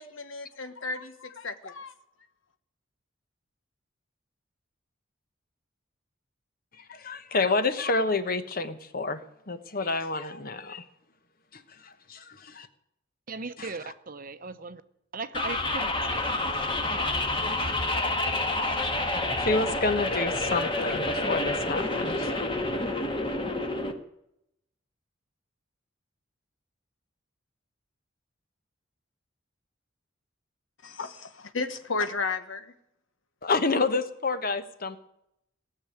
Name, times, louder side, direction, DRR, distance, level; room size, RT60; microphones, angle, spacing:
voice 1, 0.0-1.9 30.8-32.7, left 4 dB, 75° left, 1.2 m, -33 dB
voice 2, 6.9-9.2 9.5-10.8 11.5-12.7 13.6-13.9 19.3-22.5 33.4-35.0, left 3 dB, 45° left, 1.1 m, -29 dB
voice 3, 13.3-14.8 15.1-16.4, right 4 dB, 45° right, 0.8 m, -38 dB
sound 1, 15.3-23.9, left 2 dB, 25° left, 1.4 m, -28 dB
18.0 x 6.9 x 10.0 m
head